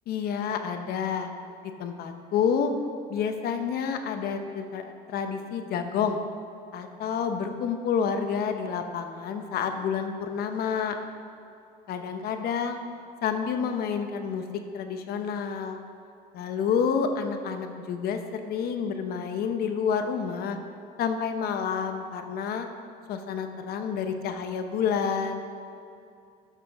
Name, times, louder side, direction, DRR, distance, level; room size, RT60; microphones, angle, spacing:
voice 1, 0.1-1.3 1.8-2.7 3.1-6.2 6.7-11.0 11.9-12.8 13.2-14.4 14.7-15.8 16.3-20.6 21.0-22.7 23.1-25.5, left 6 dB, 60° left, 6 dB, 0.8 m, -29 dB
13.0 x 6.0 x 3.5 m, 2.6 s
cardioid pair, 135°, 18 cm